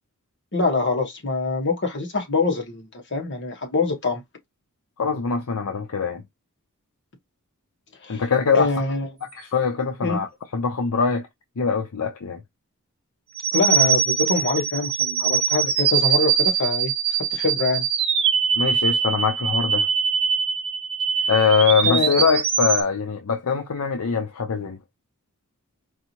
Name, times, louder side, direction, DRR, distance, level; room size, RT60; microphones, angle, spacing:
voice 1, 0.5-4.2 8.0-8.2 8.5-9.1 10.0-10.2 13.5-16.9 17.3-17.8 21.8-22.2, left 3 dB, 55° left, 1.4 m, -24 dB
voice 2, 5.0-6.2 8.1-8.7 9.3-11.3 11.6-12.4 18.6-19.9 21.3-24.8, left 5 dB, 70° left, 0.6 m, -23 dB
sound 1, 13.4-22.8, right 7 dB, 25° right, 0.8 m, -22 dB
4.7 x 2.7 x 2.9 m
head